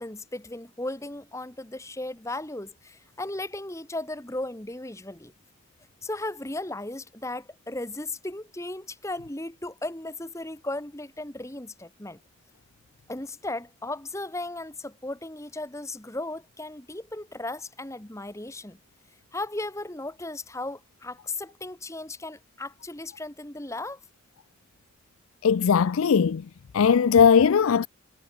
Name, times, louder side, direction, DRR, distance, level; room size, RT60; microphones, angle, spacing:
voice 1, 0.0-5.3 6.0-12.2 13.1-18.8 19.3-24.0, left 2 dB, 15° left, 1.3 m, -36 dB
voice 2, 25.4-26.5 26.7-27.9, left 6 dB, 80° left, 0.4 m, -19 dB
head